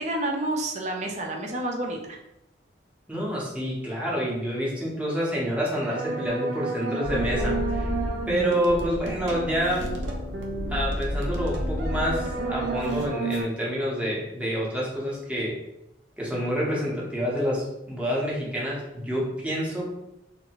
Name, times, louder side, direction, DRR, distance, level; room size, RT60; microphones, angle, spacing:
voice 1, 0.0-2.2, right 1 dB, 40° right, 1 dB, 0.5 m, -29 dB
voice 2, 3.1-7.9 8.3-9.9 10.7-15.5 16.2-19.9, equal, 5° right, -5 dB, 0.7 m, -28 dB
sound 1, 5.7-13.4, right 1 dB, 85° right, 0.6 m, -29 dB
2.6 x 2.5 x 2.9 m, 0.88 s
head